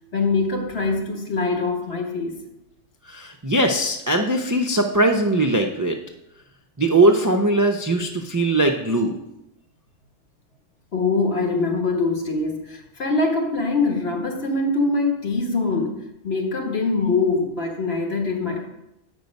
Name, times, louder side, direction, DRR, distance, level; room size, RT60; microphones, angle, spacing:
voice 1, 0.1-2.4 10.9-16.0 16.2-18.7, left 3 dB, 60° left, 2 dB, 1.5 m, -23 dB
voice 2, 3.1-6.0 6.8-9.2, right 2 dB, 30° right, 3 dB, 0.4 m, -20 dB
8.1 x 5.4 x 5.3 m, 0.86 s
omnidirectional pair, 1.2 m